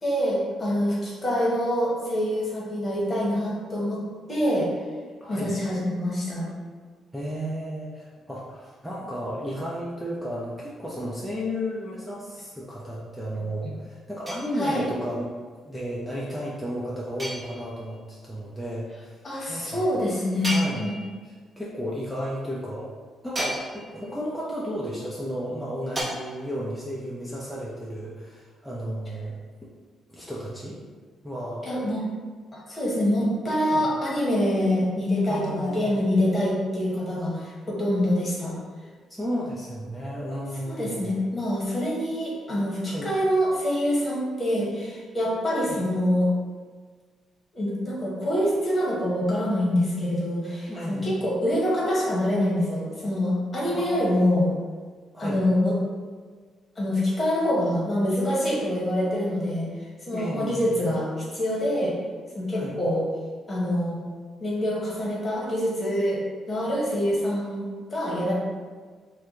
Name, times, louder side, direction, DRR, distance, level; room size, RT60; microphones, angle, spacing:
voice 1, 0.0-4.0 4.3-4.7 5.3-6.5 14.6-14.8 19.2-20.5 20.8-21.0 31.6-32.0 32.7-38.5 40.7-46.3 47.5-54.5 55.2-55.7 56.8-59.7 60.0-61.1 61.3-61.9 62.3-63.0 63.5-64.0 64.4-66.2 66.5-68.3, left 1 dB, 30° left, -5 dB, 1.1 m, -25 dB
voice 2, 5.2-5.5 7.1-15.3 15.7-19.2 19.5-19.9 20.5-21.0 21.2-22.9 23.2-29.4 29.6-29.7 30.1-30.8 31.2-31.7 33.7-33.8 35.3-35.9 39.1-41.1 42.9-43.1 45.7-45.8 50.7-51.1 53.7-54.5 55.1-55.4 60.1-60.8 62.5-62.7, equal, ahead, -6 dB, 0.5 m, -33 dB
sound 1, 14.3-15.0 17.2-18.0 20.4-21.4 23.3-24.1 26.0-26.1, right 1 dB, 25° right, 1.0 m, -34 dB
2.7 x 2.2 x 3.6 m, 1.5 s
cardioid pair, 90°, 0 cm